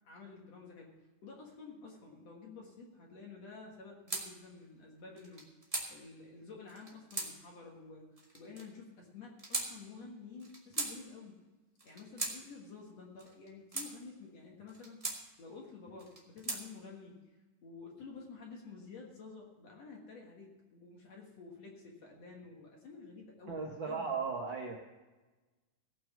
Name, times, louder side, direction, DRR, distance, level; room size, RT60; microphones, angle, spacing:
voice 1, 0.0-5.5 5.9-8.1 8.3-11.4 11.8-15.0 15.4-24.1, left 4 dB, 55° left, -1 dB, 2.5 m, -51 dB
sound 1, 4.1-4.3 5.2-5.9 6.7-7.3 8.2-8.6 9.4-9.7 10.4-10.9 11.8-12.4 13.2-13.9 14.7-15.2 16.0-16.6, right 2 dB, 40° right, 0.5 m, -38 dB
voice 2, 23.5-24.8, right 5 dB, 80° right, 0 dB, 1.0 m, -36 dB
16.5 x 6.1 x 7.2 m, 1.2 s
omnidirectional pair, 3.9 m